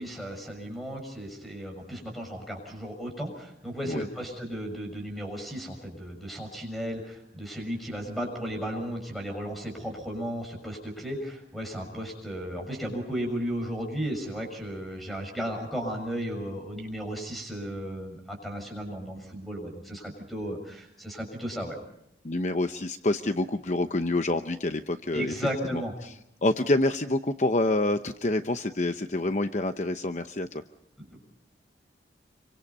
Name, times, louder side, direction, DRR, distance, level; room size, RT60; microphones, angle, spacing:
voice 1, 0.0-21.8 25.1-25.9 31.1-31.2, equal, ahead, 3 dB, 6.6 m, -35 dB
voice 2, 22.2-25.3 25.7-26.1 26.4-30.6, left 2 dB, 40° left, 8 dB, 0.8 m, -27 dB
27.0 x 24.5 x 5.5 m, 0.74 s
head